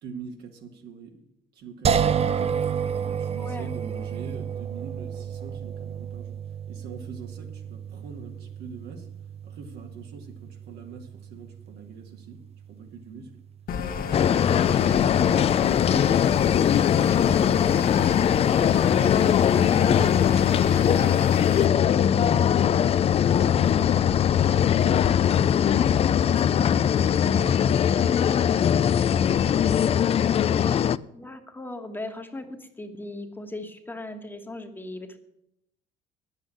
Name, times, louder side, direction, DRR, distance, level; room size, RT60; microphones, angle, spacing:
voice 1, 0.0-1.2 1.5-2.7 3.0-6.4 6.7-9.1 9.4-13.4 18.9-25.6 26.0-29.7 30.1-30.3, right 4 dB, 75° right, 3 dB, 2.2 m, -43 dB
sound 1, 1.8-14.9, right 7 dB, 35° right, 0.6 m, -32 dB
sound 2, 13.7-21.7, left 6 dB, 60° left, 1.4 m, -30 dB
sound 3, 14.1-31.0, left 9 dB, 35° left, 0.4 m, -21 dB
voice 2, 14.4-14.7 19.5-19.7 31.1-35.2, left 2 dB, 10° left, 5 dB, 1.3 m, -38 dB
9.7 x 8.1 x 8.6 m, 0.81 s
cardioid pair, 110°, 17 cm